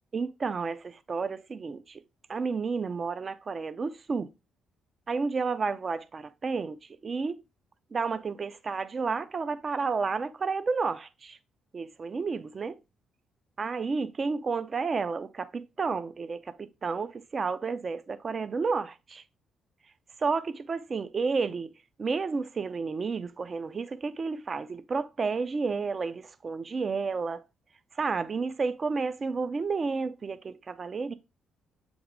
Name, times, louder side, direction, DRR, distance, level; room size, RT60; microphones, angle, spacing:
voice 1, 0.1-2.0 2.3-4.3 5.1-6.8 7.0-7.4 7.9-11.4 11.7-12.8 13.6-19.2 20.2-21.7 22.0-27.4 28.0-31.1, right 4 dB, 40° right, 0.4 m, -31 dB
7.7 x 3.5 x 3.6 m
cardioid pair, 90°, 0 cm